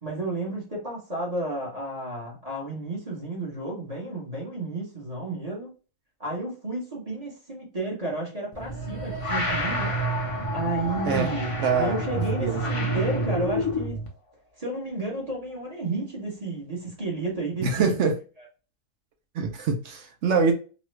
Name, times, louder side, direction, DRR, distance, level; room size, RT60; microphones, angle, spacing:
voice 1, 0.0-5.7 6.2-9.9 10.5-11.5 11.8-14.0 14.6-17.9, right 2 dB, 30° right, 1.0 m, -32 dB
sound 1, 8.5-14.1, equal, 60° left, 0.3 m, -28 dB
voice 2, 11.6-12.0 12.3-12.6 17.6-18.2 19.3-20.5, right 5 dB, 60° right, 0.8 m, -24 dB
3.0 x 2.3 x 3.1 m
omnidirectional pair, 1.6 m